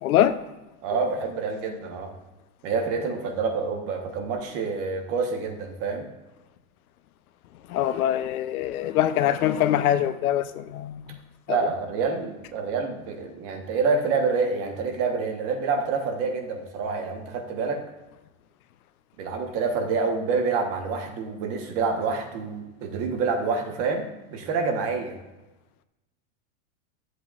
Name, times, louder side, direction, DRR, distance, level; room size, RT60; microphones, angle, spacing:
voice 1, 0.0-0.4 7.7-11.2 11.5-11.6, left 11 dB, 80° left, 12 dB, 0.7 m, -23 dB
voice 2, 0.8-2.1 2.6-6.1 11.5-17.8 19.2-25.2, right 4 dB, 35° right, 4 dB, 1.2 m, -27 dB
12.5 x 7.9 x 2.5 m, 1.1 s
supercardioid pair, 160°, 43 cm